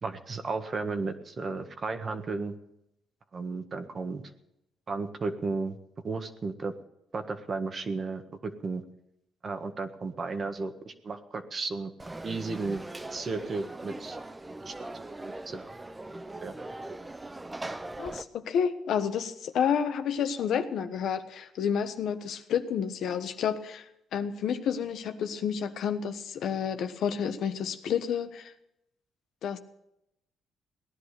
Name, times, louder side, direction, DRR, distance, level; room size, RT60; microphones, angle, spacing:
voice 1, 0.0-2.5 3.3-4.2 4.9-5.8 6.0-6.7 7.1-8.8 9.4-11.9 12.2-12.8 13.1-14.2 14.6-14.9 15.2-15.7 16.4-16.5, right 4 dB, 40° right, 7 dB, 1.6 m, -34 dB
Conversation / Crowd, 12.0-18.2, right 2 dB, 15° right, 0.8 m, -40 dB
voice 2, 18.0-23.8 24.1-28.5 29.4-29.6, left 7 dB, 75° left, 8 dB, 1.2 m, -30 dB
18.0 x 11.0 x 6.7 m, 0.83 s
cardioid pair, 90°, 0 cm